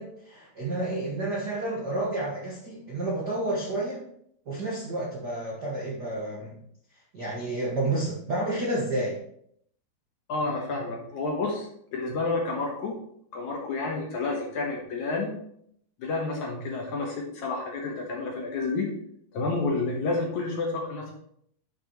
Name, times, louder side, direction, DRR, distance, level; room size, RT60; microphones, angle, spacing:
voice 1, 0.0-4.0 4.4-6.6 7.1-9.2, right 2 dB, 55° right, -4 dB, 1.1 m, -30 dB
voice 2, 10.3-12.9 13.3-15.3 16.0-18.9 19.3-21.1, left 3 dB, 65° left, 0 dB, 2.2 m, -30 dB
11.0 x 6.2 x 3.1 m, 0.70 s
omnidirectional pair, 4.4 m